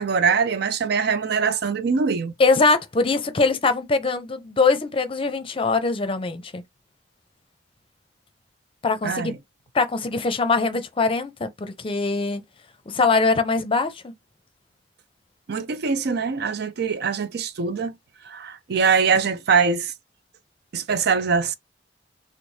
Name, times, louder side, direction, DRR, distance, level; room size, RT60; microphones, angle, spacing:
voice 1, 0.0-2.3 9.0-9.4 15.5-17.9 18.2-19.9 20.7-21.5, right 5 dB, 60° right, 0.4 m, -23 dB
voice 2, 2.4-6.6 8.8-9.3 9.7-12.4 12.9-14.1, left 4 dB, 30° left, 0.6 m, -22 dB
4.0 x 2.0 x 3.1 m
head